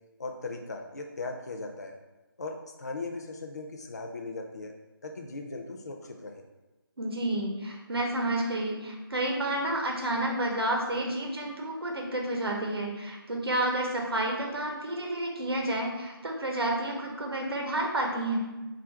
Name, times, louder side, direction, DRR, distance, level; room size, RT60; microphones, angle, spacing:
voice 1, 0.2-2.0 2.4-4.7 5.0-6.4, left 3 dB, 45° left, 3 dB, 0.4 m, -38 dB
voice 2, 7.0-18.4, right 1 dB, 80° right, 0 dB, 0.8 m, -30 dB
3.5 x 2.5 x 4.5 m, 1.1 s
figure-of-eight pair, 175°, 13 cm